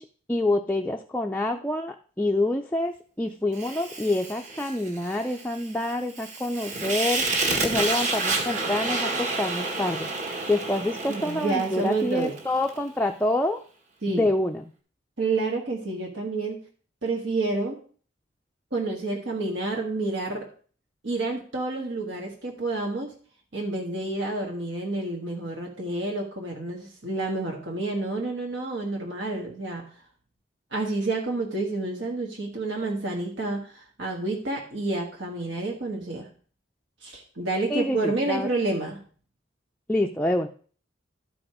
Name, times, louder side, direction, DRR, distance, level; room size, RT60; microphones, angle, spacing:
voice 1, 0.0-7.2 7.6-10.1 10.5-13.6 14.1-14.6 37.7-38.5 39.9-40.5, left 1 dB, 10° left, 2 dB, 0.4 m, -27 dB
Fire, 3.5-12.8, right 3 dB, 40° right, 1.6 m, -30 dB
voice 2, 11.1-12.3 14.0-14.3 15.2-16.6 17.0-17.8 18.7-20.5 21.0-23.1 23.5-29.9 30.7-36.3 37.0-39.0, right 2 dB, 75° right, 0 dB, 1.5 m, -29 dB
12.0 x 5.0 x 4.8 m, 0.43 s
head